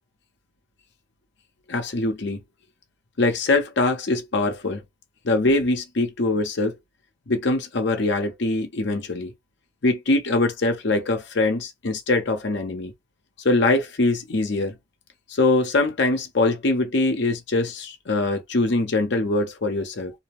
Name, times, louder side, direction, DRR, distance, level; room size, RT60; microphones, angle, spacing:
voice 1, 1.7-2.4 3.2-4.8 5.2-6.7 7.3-9.3 9.8-12.9 13.4-14.7 15.3-20.1, left 2 dB, 60° left, 0.7 m, -23 dB
2.7 x 2.0 x 2.9 m
head